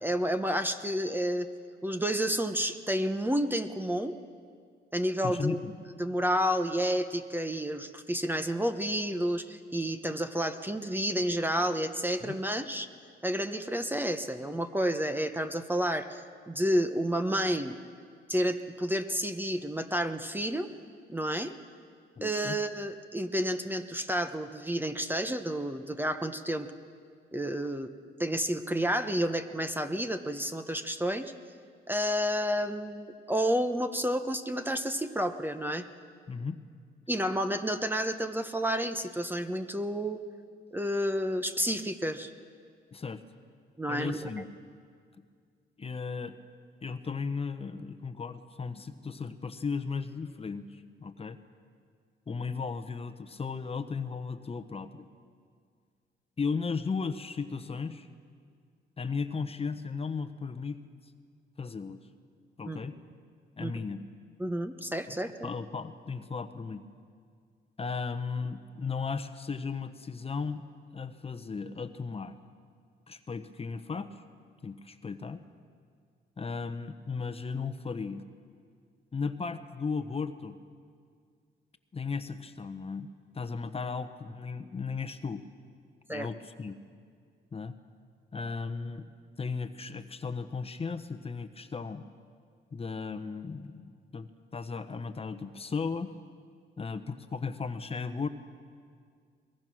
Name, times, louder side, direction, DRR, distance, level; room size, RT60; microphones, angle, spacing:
voice 1, 0.0-1.5 1.8-4.1 4.9-5.6 6.0-12.9 13.2-17.8 18.3-20.7 21.1-21.5 22.2-26.7 27.3-27.9 28.2-31.3 31.9-35.9 37.1-40.2 40.7-42.3 43.8-44.3 62.6-62.8 63.6-63.7 64.4-65.5 86.1-86.3, equal, 10° right, 8 dB, 1.0 m, -30 dB
voice 2, 5.2-5.8 12.2-12.4 22.2-22.6 36.3-36.6 42.9-43.2 43.9-44.5 45.8-46.3 46.8-51.4 52.3-55.1 56.4-58.1 59.0-60.8 61.6-62.1 62.6-63.0 63.6-64.0 65.1-65.2 65.4-66.8 67.8-70.6 70.9-72.4 73.1-74.2 74.6-75.4 76.4-78.2 79.1-80.6 81.9-83.1 83.3-85.4 86.1-86.8 87.5-87.7 88.3-89.0 89.4-92.0 92.7-96.1 96.8-98.3, left 5 dB, 30° left, 10 dB, 1.0 m, -35 dB
22.0 x 21.0 x 6.2 m, 2.1 s
cardioid pair, 90°, 20 cm